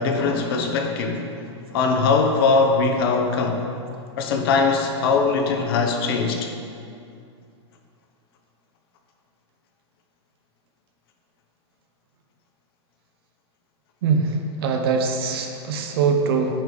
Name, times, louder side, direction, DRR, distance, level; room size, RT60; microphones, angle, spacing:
voice 1, 0.0-1.4 1.7-3.7 4.2-6.5, left 4 dB, 55° left, 4 dB, 0.8 m, -21 dB
voice 2, 14.0-16.6, right 5 dB, 55° right, 4 dB, 0.7 m, -22 dB
8.7 x 5.2 x 3.2 m, 2.4 s
supercardioid pair, 165°, 15 cm